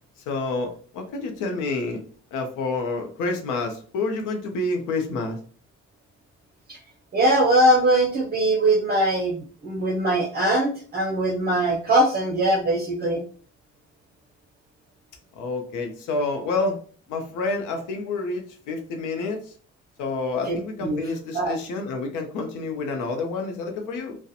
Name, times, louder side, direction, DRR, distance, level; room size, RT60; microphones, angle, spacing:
voice 1, 0.3-2.0 2.3-5.4 15.4-16.8 17.1-19.5 20.0-24.2, left 3 dB, 85° left, 4 dB, 0.6 m, -28 dB
voice 2, 7.1-13.2 20.5-21.0 21.3-21.5, right 1 dB, 35° right, 0 dB, 0.6 m, -21 dB
2.4 x 2.1 x 2.7 m, 0.43 s
cardioid pair, 90°, 30 cm